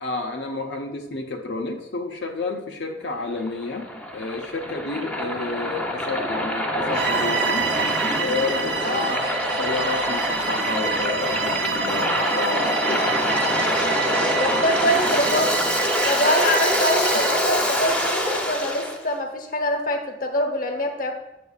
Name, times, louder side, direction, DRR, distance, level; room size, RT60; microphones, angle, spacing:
voice 1, 0.0-7.7 8.2-9.2 9.6-13.2 14.3-14.4, left 3 dB, 85° left, 2 dB, 0.6 m, -30 dB
Waves surf, 3.2-19.0, equal, 5° left, 0.7 m, -25 dB
Bowed string instrument, 6.9-17.5, right 7 dB, 65° right, 0.5 m, -28 dB
voice 2, 8.8-9.2 14.4-15.5 16.0-21.2, left 1 dB, 50° left, 5 dB, 0.8 m, -24 dB
8.2 x 6.6 x 2.4 m, 0.99 s
head